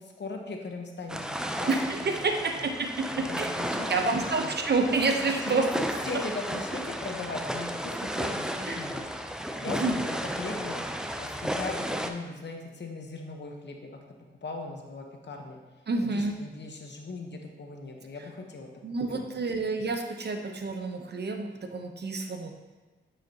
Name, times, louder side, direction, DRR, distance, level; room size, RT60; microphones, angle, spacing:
voice 1, 0.0-1.7 2.0-2.3 2.6-2.7 3.1-4.5 5.4-9.1 9.6-10.8 11.2-14.0 14.4-15.6 16.1-18.7 19.3-19.4, left 3 dB, 60° left, 2 dB, 1.1 m, -39 dB
sound 1, 1.1-12.1, equal, 5° right, 0.5 m, -33 dB
voice 2, 1.7-3.5 3.9-5.7 8.7-8.9 9.7-10.0 15.9-16.4 18.8-22.5, right 3 dB, 55° right, 4 dB, 0.9 m, -29 dB
9.0 x 5.0 x 2.9 m, 1.3 s
cardioid pair, 55°, 21 cm